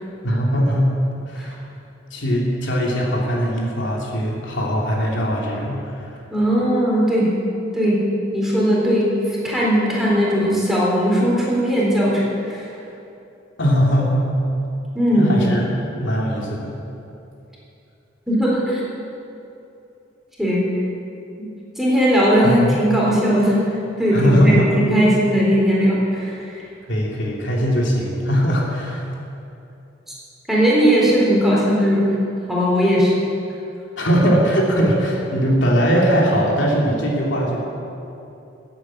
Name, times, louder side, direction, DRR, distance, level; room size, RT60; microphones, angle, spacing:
voice 1, 0.2-0.9 1.3-1.6 2.1-6.2 13.6-14.2 15.1-15.6 16.0-16.7 22.4-22.7 24.1-24.7 26.9-29.0 34.0-37.6, equal, 85° left, -3 dB, 2.9 m, -20 dB
voice 2, 6.3-7.3 7.7-8.0 8.3-12.6 14.9-15.3 18.3-18.8 20.4-20.6 21.8-26.6 30.1-30.2 30.5-32.2 32.5-33.1, equal, ahead, -6 dB, 3.8 m, -18 dB
14.0 x 9.0 x 8.7 m, 2.8 s
head